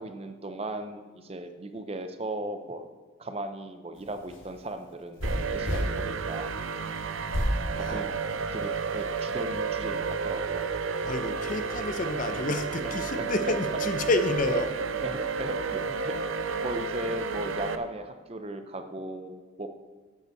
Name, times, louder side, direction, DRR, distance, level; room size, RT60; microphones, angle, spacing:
voice 1, 0.0-2.9 3.2-6.7 7.8-8.2 8.5-10.7 12.3-12.4 13.2-13.3 15.0-15.1 15.4-16.2 16.6-19.7, right 1 dB, 30° right, 8 dB, 0.5 m, -37 dB
sound 1, 4.0-5.9 7.3-7.6 8.2-8.8, equal, 75° left, 2.1 m, -30 dB
sound 2, 5.2-17.8, right 5 dB, 80° right, 0.6 m, -32 dB
voice 2, 11.0-14.7, left 2 dB, 40° left, 9 dB, 0.6 m, -29 dB
10.5 x 5.5 x 7.0 m, 1.4 s
head